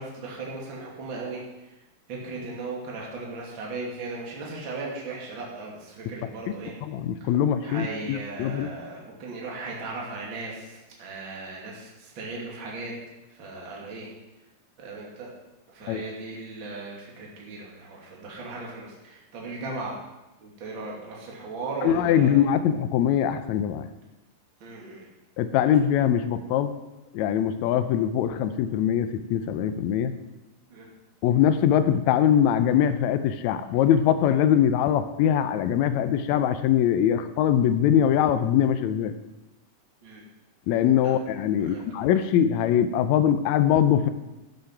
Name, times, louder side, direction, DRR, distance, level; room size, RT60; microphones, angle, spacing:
voice 1, 0.0-1.4 2.1-6.7 7.2-7.3 7.6-12.9 13.3-14.1 14.8-15.3 15.7-20.0 20.4-22.4 24.6-25.1 30.7-30.9 40.0-40.2 41.0-41.1 41.6-41.8, right 3 dB, 35° right, -3 dB, 2.8 m, -37 dB
voice 2, 6.8-8.7 15.9-16.0 21.8-23.9 25.4-26.7 27.1-30.1 31.2-39.1 40.7-44.1, left 9 dB, 85° left, 10 dB, 1.6 m, -22 dB
12.0 x 8.2 x 5.9 m, 1.0 s
omnidirectional pair, 4.0 m